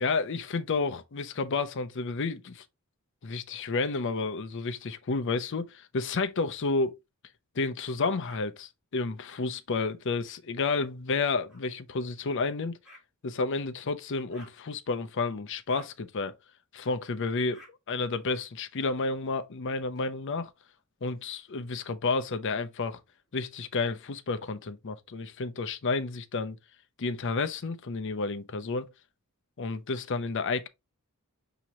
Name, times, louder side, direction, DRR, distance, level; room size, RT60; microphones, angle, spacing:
voice 1, 0.0-2.6 3.2-7.0 7.5-12.8 13.2-16.3 16.7-20.5 21.0-23.0 23.3-26.6 27.0-28.9 29.6-30.7, left 3 dB, 60° left, 0.6 m, -31 dB
sound 1, 8.2-8.4 9.3-9.4 11.5-11.6 12.8-13.0 14.3-14.6 15.7-15.9 17.5-17.7 19.2-20.0 21.0-21.9 22.8-23.7, equal, 5° right, 3.0 m, -56 dB
6.1 x 2.9 x 2.9 m
head